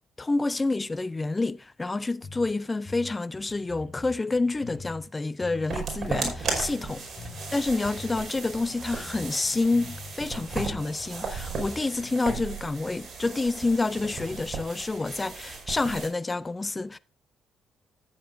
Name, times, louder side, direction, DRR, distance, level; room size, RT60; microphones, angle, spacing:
voice 1, 0.2-7.1 7.5-17.0, left 3 dB, 20° left, 0.6 m, -28 dB
sound 1, 2.2-2.5 2.8-5.1 5.4-7.6 8.0-10.2 10.5-12.4, left 3 dB, 40° left, 5.1 m, -44 dB
sound 2, 5.7-16.1, right 4 dB, 45° right, 5.1 m, -36 dB
14.0 x 8.9 x 2.6 m
cardioid pair, 90°, 0 cm